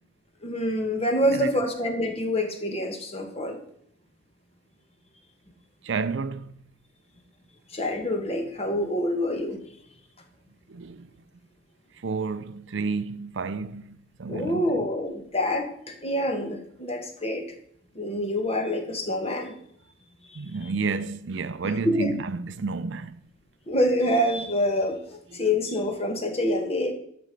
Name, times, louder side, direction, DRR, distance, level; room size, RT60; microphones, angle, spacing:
voice 1, 0.4-3.6 7.7-9.6 14.3-17.5 17.9-19.5 21.8-22.1 23.7-26.9, left 1 dB, 30° left, 1.5 m, -26 dB
voice 2, 5.8-6.5 10.7-11.1 12.0-14.7 20.3-23.2, right 4 dB, 70° right, 0.5 m, -31 dB
11.5 x 6.2 x 5.2 m
head